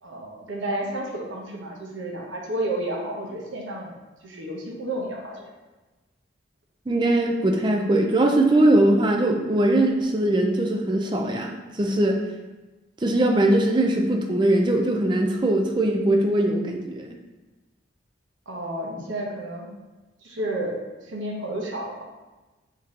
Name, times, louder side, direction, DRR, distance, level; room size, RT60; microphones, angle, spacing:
voice 1, 0.0-4.0 4.2-5.5 18.5-19.7 20.2-22.0, right 1 dB, 90° right, -1 dB, 0.8 m, -31 dB
voice 2, 6.9-12.2 13.0-17.2, right 1 dB, 25° right, 2 dB, 0.4 m, -21 dB
3.7 x 2.8 x 3.7 m, 1.1 s
head